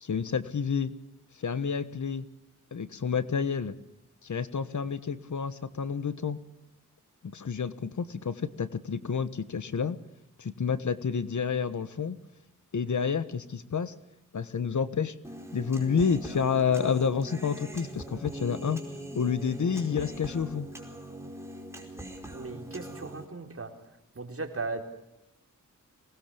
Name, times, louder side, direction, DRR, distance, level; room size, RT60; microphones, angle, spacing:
voice 1, 0.0-0.9 1.4-2.2 2.7-3.7 4.2-6.4 7.2-10.0 10.4-12.2 12.7-13.9 14.3-15.1 15.5-18.8 19.1-20.7, left 6 dB, 65° left, 13 dB, 1.4 m, -29 dB
Human voice, 15.2-23.3, right 1 dB, 10° right, 4.8 m, -41 dB
voice 2, 22.3-23.7 24.1-24.8, right 3 dB, 45° right, 4 dB, 4.0 m, -37 dB
24.0 x 20.0 x 7.0 m, 0.86 s
wide cardioid pair, 95°, 32 cm